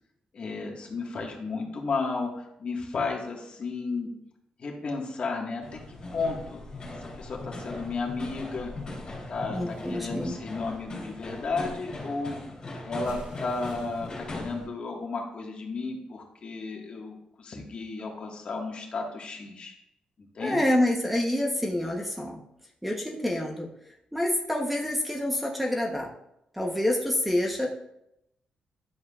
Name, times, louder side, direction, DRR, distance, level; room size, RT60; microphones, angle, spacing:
voice 1, 0.3-4.1 4.6-5.8 6.1-6.6 7.0-8.7 9.3-12.4 12.8-19.7 20.4-20.6, left 3 dB, 50° left, 0 dB, 1.7 m, -33 dB
sound 1, 5.6-14.7, left 2 dB, 30° left, 3.0 m, -39 dB
voice 2, 9.5-10.3 20.4-22.4 22.8-26.1 26.5-27.7, left 1 dB, 5° right, 0 dB, 1.0 m, -27 dB
sound 2, 9.7-11.6 13.0-14.3, equal, 50° right, 2.1 m, -48 dB
10.5 x 7.4 x 2.5 m, 0.81 s
cardioid pair, 120°, 2 cm